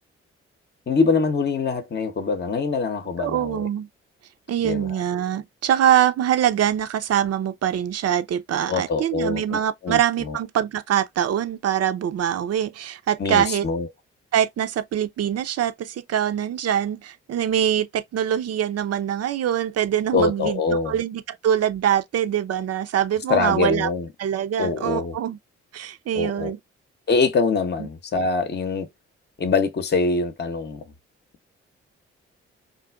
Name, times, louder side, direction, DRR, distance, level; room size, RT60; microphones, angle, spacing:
voice 1, 0.9-3.7 4.6-5.0 8.7-10.4 13.2-13.9 20.1-21.0 23.3-24.1 24.6-25.2 26.2-26.5 27.1-28.9 29.4-30.8, left 4 dB, 35° left, 0.8 m, -24 dB
voice 2, 3.2-3.9 4.5-13.7 14.3-23.9 24.2-25.4 25.7-26.6 27.8-27.9, right 10 dB, 50° right, 0.6 m, -24 dB
3.8 x 2.4 x 2.3 m
hypercardioid pair, 40°, 31 cm